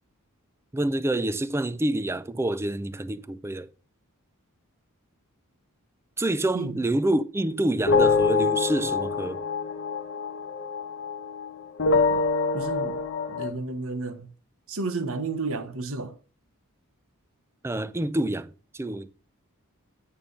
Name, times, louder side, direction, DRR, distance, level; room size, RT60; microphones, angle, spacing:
voice 1, 0.7-3.7 6.2-9.4 17.6-19.1, right 1 dB, 10° right, 0.4 m, -27 dB
sound 1, 7.9-11.5 11.8-13.5, left 4 dB, 60° left, 0.9 m, -25 dB
voice 2, 12.5-13.0 13.3-14.3 14.7-16.2, right 3 dB, 65° right, 1.1 m, -32 dB
8.7 x 4.5 x 5.3 m
head